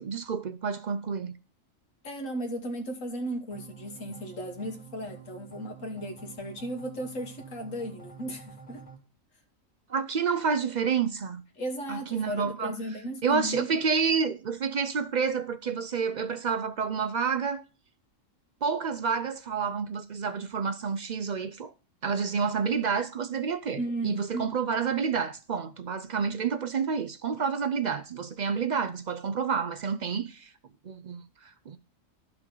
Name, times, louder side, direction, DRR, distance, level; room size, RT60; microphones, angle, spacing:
voice 1, 0.0-1.3 9.9-11.4 11.9-12.7 13.2-17.6 18.6-21.7 22.0-30.5 30.8-31.8, right 6 dB, 65° right, 0.4 m, -29 dB
voice 2, 2.0-8.8 11.6-13.7 23.8-24.5, right 1 dB, 70° left, 1.8 m, -35 dB
sound 1, 3.5-9.0, right 6 dB, 30° left, 2.0 m, -48 dB
12.0 x 5.9 x 3.8 m
omnidirectional pair, 1.4 m